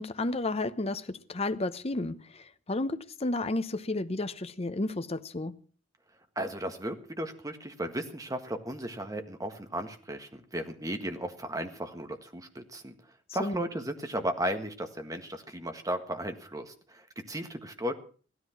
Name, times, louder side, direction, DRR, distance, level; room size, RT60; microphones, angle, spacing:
voice 1, 0.0-2.2 2.7-5.6 13.4-13.6, left 2 dB, 30° left, 0.9 m, -32 dB
voice 2, 6.3-12.9 13.3-17.9, right 1 dB, 20° right, 1.6 m, -35 dB
16.0 x 13.5 x 5.9 m
head